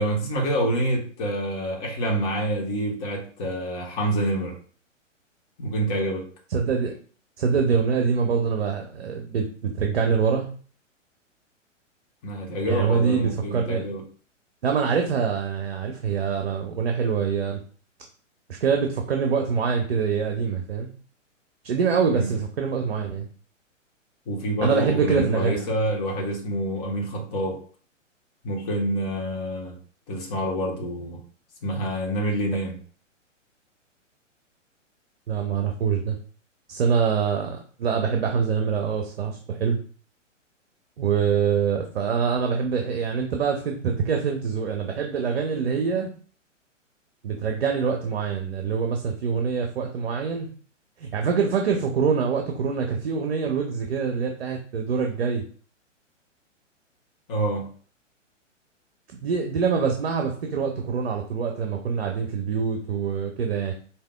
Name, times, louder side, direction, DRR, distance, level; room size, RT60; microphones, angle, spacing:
voice 1, 0.0-4.6 5.6-6.3 12.2-14.0 22.1-22.3 24.3-27.6 28.4-29.8 30.1-31.2 31.6-32.8 57.3-57.7, right 1 dB, 30° left, 0 dB, 1.2 m, -27 dB
voice 2, 6.5-7.0 7.4-10.5 12.7-13.9 14.6-17.6 18.6-20.9 21.6-23.3 24.6-25.7 35.3-36.2 36.7-39.8 41.0-46.1 47.2-50.5 51.0-55.4 59.1-63.7, right 6 dB, 50° right, 3 dB, 0.7 m, -25 dB
5.0 x 2.8 x 2.3 m, 0.43 s
figure-of-eight pair, 120°, 38 cm